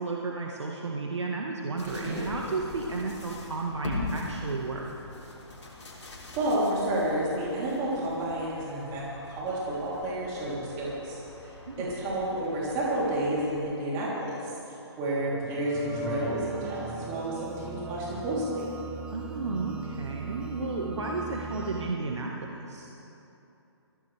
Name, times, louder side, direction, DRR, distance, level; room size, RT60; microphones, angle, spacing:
voice 1, 0.0-4.8 11.7-11.9 19.1-22.9, right 3 dB, 80° right, -1 dB, 1.6 m, -33 dB
sound 1, 1.8-13.6, left 2 dB, 85° left, 3.5 m, -42 dB
voice 2, 1.8-2.2 6.3-11.2 11.8-14.4 15.0-18.6, right 1 dB, 20° right, -7 dB, 3.3 m, -30 dB
sound 2, 15.2-21.9, right 2 dB, 5° right, 0.9 m, -38 dB
21.5 x 15.5 x 3.4 m, 2.9 s
figure-of-eight pair, 145°, 15 cm